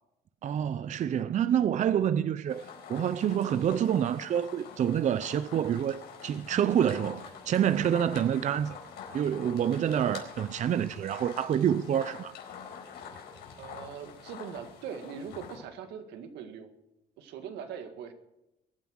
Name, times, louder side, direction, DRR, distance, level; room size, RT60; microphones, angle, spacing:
voice 1, 0.4-8.8 9.1-12.3, right 9 dB, 45° right, 0.6 m, -27 dB
sound 1, 2.5-15.6, left 7 dB, 80° left, 4.4 m, -46 dB
voice 2, 13.6-16.7 17.2-18.1, right 7 dB, 85° right, 1.9 m, -41 dB
22.5 x 9.6 x 6.4 m
cardioid pair, 110°, 17 cm